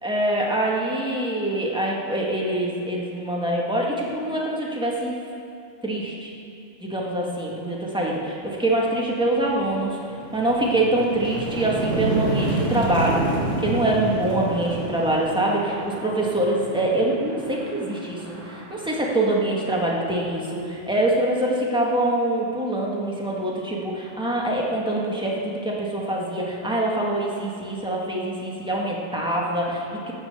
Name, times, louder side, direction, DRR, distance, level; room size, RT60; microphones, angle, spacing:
voice 1, 0.0-5.2 5.8-6.3 6.8-10.0 10.3-13.2 13.6-30.1, right 1 dB, 5° right, -4 dB, 1.8 m, -24 dB
sound 1, 8.5-8.7 9.1-19.9, right 1 dB, 70° right, 2.3 m, -30 dB
18.0 x 6.0 x 6.9 m, 2.5 s
omnidirectional pair, 1.3 m